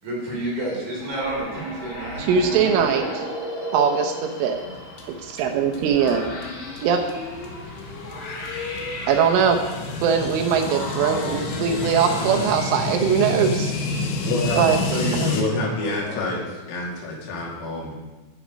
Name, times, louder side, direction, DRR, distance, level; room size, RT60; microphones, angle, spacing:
voice 1, 0.0-2.3 5.7-6.2 14.8-16.4, right 1 dB, 40° right, -3 dB, 4.5 m, -31 dB
sound 1, 1.0-12.5, equal, 50° left, 6.5 m, -35 dB
voice 2, 2.2-3.3 3.7-4.2 4.4-4.6 5.1-6.3 6.8-7.0 9.1-9.6 10.0-13.7 14.6-14.8 15.1-15.3, right 7 dB, 75° right, 4 dB, 3.3 m, -21 dB
sound 2, 4.5-15.4, left 3 dB, 70° left, 3.5 m, -29 dB
voice 3, 14.3-14.7 15.3-16.4 16.7-17.9, left 2 dB, 90° left, -3 dB, 5.4 m, -27 dB
11.5 x 10.5 x 5.2 m, 1.1 s
omnidirectional pair, 5.9 m